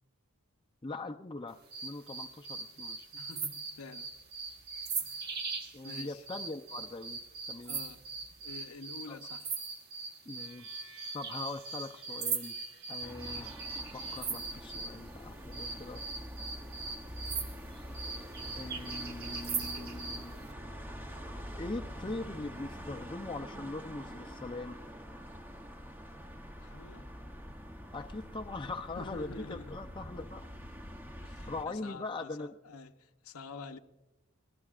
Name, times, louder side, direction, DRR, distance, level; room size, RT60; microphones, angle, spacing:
voice 1, 0.8-3.1 5.7-7.2 7.5-7.8 9.1-9.2 10.3-16.0 18.6-20.4 21.6-24.8 27.9-30.5 31.5-32.5, left 2 dB, 20° left, 0.6 m, -42 dB
sound 1, 1.7-15.0 15.5-20.3, right 4 dB, 45° right, 1.2 m, -40 dB
voice 2, 3.1-4.1 4.9-5.4 5.8-6.3 7.7-8.0 8.4-9.6 26.6-27.1 29.0-29.7 31.2-33.8, left 3 dB, 85° left, 0.8 m, -48 dB
sound 2, 8.5-8.7 10.4-14.3, right 5 dB, 65° right, 1.1 m, -57 dB
sound 3, 13.0-31.7, equal, 10° right, 0.8 m, -45 dB
29.5 x 20.0 x 2.5 m
head